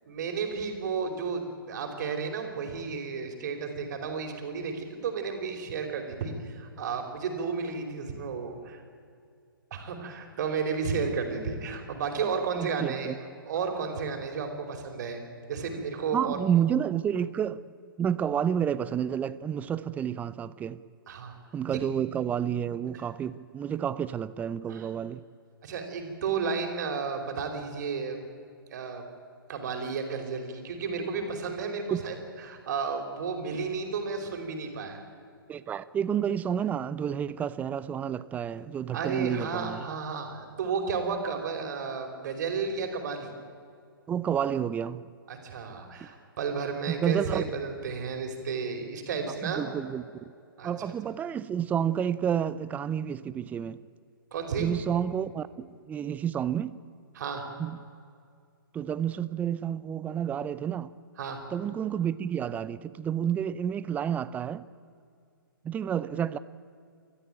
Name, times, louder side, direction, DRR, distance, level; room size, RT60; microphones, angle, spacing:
voice 1, 0.0-8.8 9.7-13.1 13.4-15.2 15.5-16.4 21.1-21.3 21.7-21.8 22.9-23.0 24.7-24.9 25.6-28.2 28.7-29.1 29.5-35.0 38.9-43.3 45.3-49.7 50.6-50.7 54.3-54.7 57.1-57.5 61.2-61.4, right 5 dB, 50° right, 4.6 m, -32 dB
voice 2, 12.6-13.1 16.1-17.6 18.0-20.8 21.5-25.2 31.9-32.0 35.5-39.8 44.1-45.0 46.9-47.5 49.4-50.0 50.6-53.8 54.6-56.8 57.6-57.8 58.7-60.9 61.5-64.7 65.6-66.4, right 9 dB, 15° right, 0.6 m, -30 dB
29.5 x 14.0 x 9.0 m
figure-of-eight pair, 130°, 12 cm